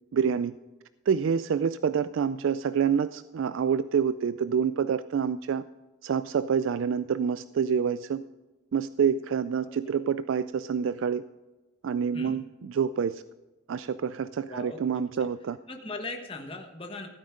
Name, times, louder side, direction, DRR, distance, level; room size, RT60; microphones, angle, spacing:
voice 1, 0.1-0.5 1.1-5.6 6.0-8.2 8.7-11.2 11.8-13.2 13.7-15.6, right 7 dB, 70° right, 14 dB, 0.3 m, -27 dB
voice 2, 14.5-15.3 15.7-17.1, left 2 dB, 25° left, 3 dB, 1.3 m, -39 dB
15.5 x 9.2 x 3.7 m, 1.1 s
head